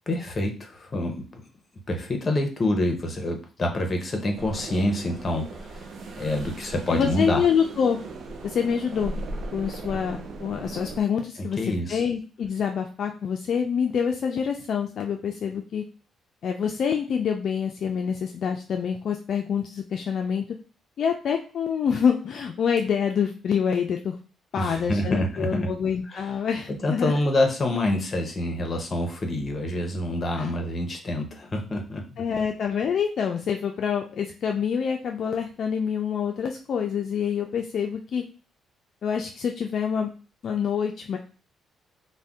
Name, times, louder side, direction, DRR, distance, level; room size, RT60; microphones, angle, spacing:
voice 1, 0.1-1.4 1.9-5.9 6.2-7.4 11.4-12.0 24.6-25.7 26.1-26.3 26.7-32.2, left 1 dB, 35° left, 3 dB, 0.8 m, -27 dB
sound 1, 4.4-11.0, right 2 dB, 60° right, 0.5 m, -37 dB
voice 2, 6.9-8.0 8.4-9.1 9.5-11.6 11.9-15.8 16.4-20.5 21.0-24.2 24.5-27.1 30.4-30.5 32.2-38.2 39.0-40.1 40.4-41.2, left 7 dB, 60° left, 3 dB, 0.3 m, -26 dB
2.6 x 2.1 x 3.5 m, 0.36 s
cardioid pair, 90°, 0 cm